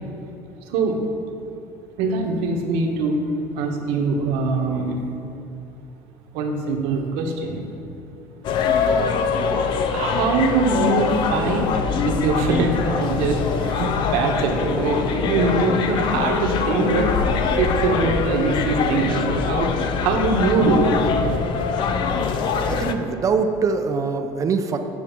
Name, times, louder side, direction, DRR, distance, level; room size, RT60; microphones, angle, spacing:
voice 1, 0.7-1.0 2.0-3.2 3.5-5.0 6.3-7.7 9.9-11.7 12.0-17.2 17.5-20.9, right 3 dB, 75° right, 2 dB, 1.3 m, -22 dB
sound 1, 8.4-22.9, left 5 dB, 55° left, 0.6 m, -23 dB
voice 2, 22.6-24.8, right 5 dB, 35° right, 6 dB, 0.6 m, -23 dB
9.2 x 4.8 x 7.2 m, 2.8 s
cardioid pair, 120°, 10 cm